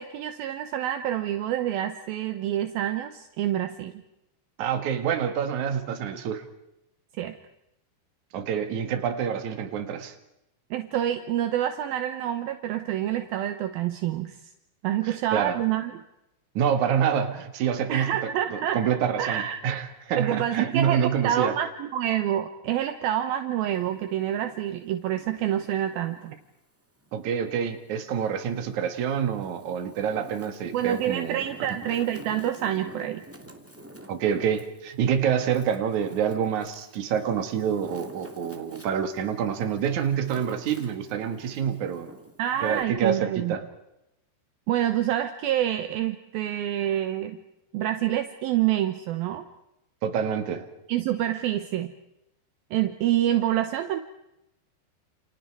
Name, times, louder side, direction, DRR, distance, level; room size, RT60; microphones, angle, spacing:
voice 1, 0.0-3.9 7.2-7.4 10.7-14.4 14.8-15.9 17.9-18.8 19.2-19.6 20.2-26.4 30.7-33.2 42.4-43.6 44.7-47.4 47.7-49.4 50.9-51.9 52.7-54.0, right 11 dB, 75° right, 8 dB, 2.2 m, -27 dB
voice 2, 4.6-6.4 8.3-10.1 15.0-15.6 16.5-18.2 18.5-21.6 27.1-31.4 34.1-42.1 42.6-43.6 50.0-50.7, right 8 dB, 50° right, 7 dB, 2.5 m, -27 dB
Wind, 23.6-26.5 27.0-28.3 28.9-42.8, right 1 dB, 10° right, 0.6 m, -48 dB
29.5 x 29.0 x 4.8 m, 0.87 s
omnidirectional pair, 5.5 m